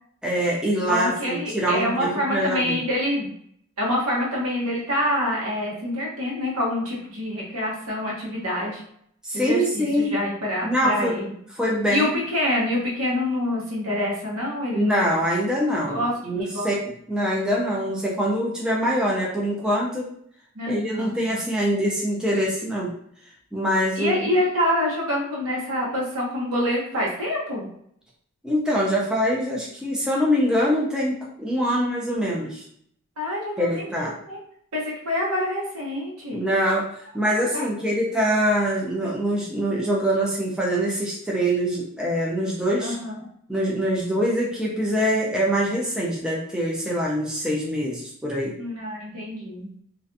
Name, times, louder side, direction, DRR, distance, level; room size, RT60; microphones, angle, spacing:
voice 1, 0.2-2.8 9.2-10.1 10.6-11.2 11.6-12.1 14.7-16.7 17.1-20.1 20.7-22.9 23.5-24.2 28.4-32.6 33.6-34.1 36.3-36.9 37.1-42.9 43.5-48.5, equal, 5° right, -4 dB, 0.4 m, -24 dB
voice 2, 0.9-3.3 3.8-8.8 9.3-11.3 11.9-15.1 15.8-16.1 16.4-16.7 17.2-17.3 20.5-21.1 24.0-27.7 33.2-34.4 34.7-36.4 37.5-37.7 42.8-43.3 48.6-49.7, left 1 dB, 85° right, -4 dB, 0.9 m, -26 dB
2.4 x 2.2 x 2.5 m, 0.67 s
head